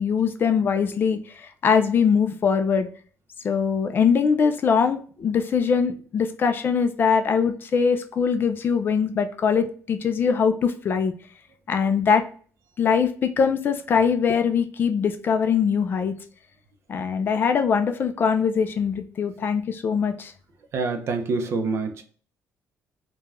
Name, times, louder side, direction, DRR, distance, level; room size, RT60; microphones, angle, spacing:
voice 1, 0.0-2.9 3.4-11.1 11.7-12.2 12.8-16.1 16.9-20.3, left 6 dB, 40° left, 8 dB, 0.3 m, -22 dB
voice 2, 20.7-22.0, right 4 dB, 50° right, 6 dB, 0.5 m, -26 dB
3.3 x 2.2 x 2.4 m, 0.43 s
cardioid pair, 155°, 6 cm